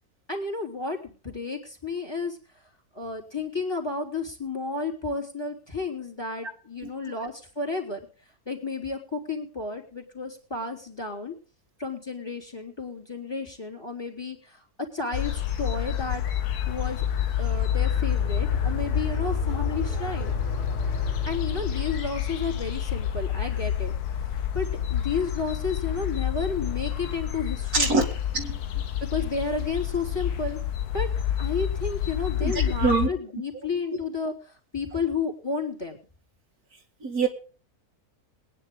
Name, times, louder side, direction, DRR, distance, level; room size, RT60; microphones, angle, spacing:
voice 1, 0.3-2.4 2.9-8.0 8.4-11.3 11.8-14.6 14.9-17.0 17.4-20.4 21.3-28.1 29.0-30.6 30.9-31.1 31.4-36.0, left 4 dB, 15° left, 2 dB, 3.2 m, -32 dB
sound 1, 15.1-33.1, left 9 dB, 80° left, 1.5 m, -28 dB
sound 2, 15.5-22.3, equal, 30° left, 3.3 m, -37 dB
voice 2, 27.7-28.0 28.3-28.6 32.4-33.1 37.0-37.3, right 4 dB, 70° right, 2 dB, 2.7 m, -24 dB
22.0 x 9.9 x 3.9 m, 0.38 s
omnidirectional pair, 1.6 m